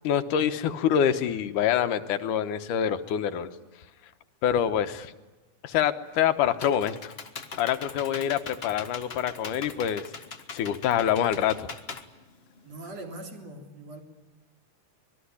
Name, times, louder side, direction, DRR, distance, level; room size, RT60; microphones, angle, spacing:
voice 1, 0.0-3.5 4.4-5.1 5.6-7.1 7.6-10.1 10.5-11.6, left 9 dB, 85° left, 10 dB, 2.6 m, -26 dB
Computer keyboard, 6.1-12.9, left 4 dB, 60° left, 0.6 m, -41 dB
voice 2, 12.6-14.0, right 2 dB, 55° right, 3 dB, 4.6 m, -41 dB
25.0 x 21.0 x 9.9 m, 1.2 s
omnidirectional pair, 3.6 m